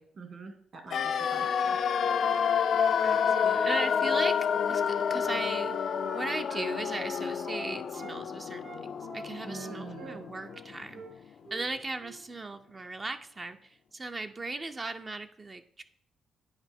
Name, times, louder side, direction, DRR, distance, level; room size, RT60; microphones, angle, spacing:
voice 1, 0.0-1.8 9.4-10.2, right 4 dB, 50° right, 5 dB, 1.7 m, -45 dB
sound 1, 0.9-10.8 11.1-11.2, left 7 dB, 65° left, 0.4 m, -29 dB
voice 2, 3.0-15.8, right 3 dB, 30° right, 7 dB, 0.5 m, -38 dB
Wind instrument woodwind instrument, 4.7-8.2 8.6-10.7 10.9-11.1 11.4-11.7 12.0-12.2, right 4 dB, 75° right, 1.1 m, -46 dB
9.6 x 4.8 x 3.5 m, 0.65 s
cardioid pair, 85°, 0 cm